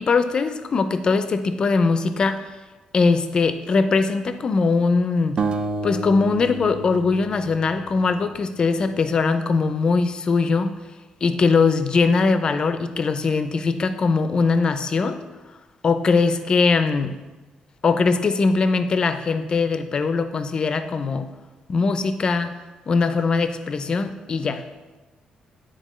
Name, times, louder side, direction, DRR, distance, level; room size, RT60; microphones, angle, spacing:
voice 1, 0.0-2.4 2.9-5.4 5.8-10.7 11.2-15.2 15.8-17.2 17.8-21.3 21.7-22.5 22.9-24.6, left 4 dB, 35° left, 10 dB, 0.4 m, -21 dB
sound 1, 5.4-8.5, right 3 dB, 40° right, 0.3 m, -30 dB
8.8 x 4.1 x 3.1 m, 1.1 s
cardioid pair, 135°, 2 cm